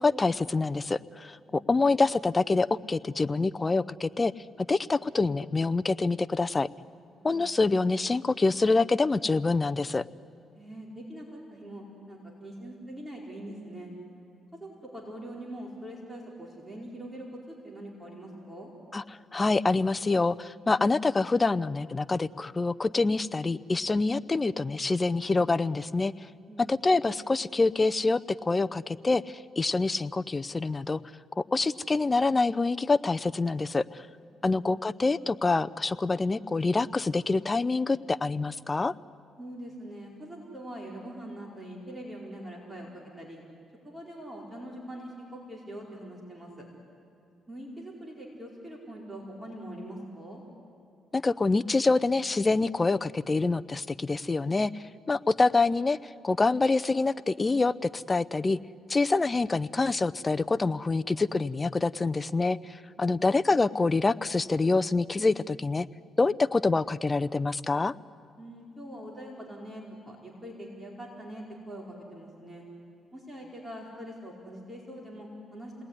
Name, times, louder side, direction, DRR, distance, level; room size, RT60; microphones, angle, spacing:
voice 1, 0.0-4.3 4.6-6.7 7.2-10.0 18.9-19.0 19.3-26.1 26.7-31.0 31.4-34.1 34.4-38.9 51.1-58.6 58.9-65.9 66.2-67.9, left 3 dB, 25° left, 14 dB, 0.6 m, -26 dB
voice 2, 10.5-13.9 14.6-18.7 26.5-26.7 39.4-43.4 43.8-46.6 47.5-50.4 63.0-63.3 68.4-72.6 73.1-75.8, right 1 dB, 15° right, -1 dB, 4.8 m, -43 dB
28.0 x 19.5 x 9.9 m, 2.6 s
cardioid pair, 90°, 0 cm